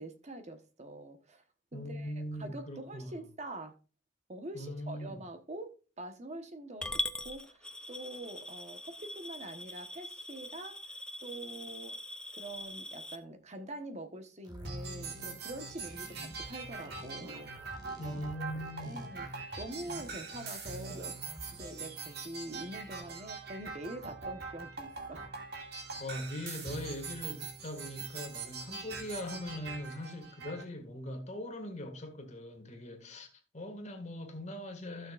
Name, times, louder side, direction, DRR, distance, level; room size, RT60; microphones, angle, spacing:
voice 1, 0.0-1.4 1.7-2.1 2.4-3.8 4.3-10.8 11.2-12.0 12.3-17.5 17.8-18.0 18.3-19.3 19.6-25.3, right 1 dB, 35° right, 1.1 m, -45 dB
voice 2, 1.7-3.1 4.5-5.2 18.0-19.1 26.0-33.3 33.5-35.1, left 1 dB, 40° left, 1.8 m, -41 dB
Coin (dropping) / Glass, 6.8-13.2, left 1 dB, 5° left, 0.5 m, -41 dB
sound 1, 14.4-21.8, left 1 dB, 20° right, 1.9 m, -50 dB
sound 2, 14.6-30.6, right 4 dB, 60° right, 2.2 m, -43 dB
15.0 x 6.4 x 2.4 m
head